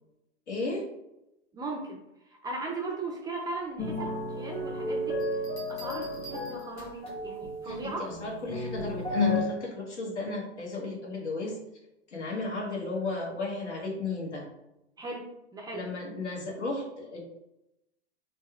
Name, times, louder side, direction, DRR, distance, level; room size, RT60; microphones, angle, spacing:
voice 1, 0.5-0.8 7.6-11.6 12.1-14.5 15.7-17.2, left 3 dB, 85° left, -1 dB, 1.2 m, -34 dB
voice 2, 1.5-2.0 2.2-5.2 5.7-8.1 15.0-15.9, right 3 dB, 10° right, 0 dB, 0.4 m, -37 dB
sound 1, 3.8-9.4, left 2 dB, 15° left, 0.8 m, -32 dB
Bell, 5.2-7.2 8.8-9.1, right 2 dB, 45° left, 1.4 m, -48 dB
4.1 x 2.2 x 2.3 m, 0.86 s
hypercardioid pair, 100°, 34 cm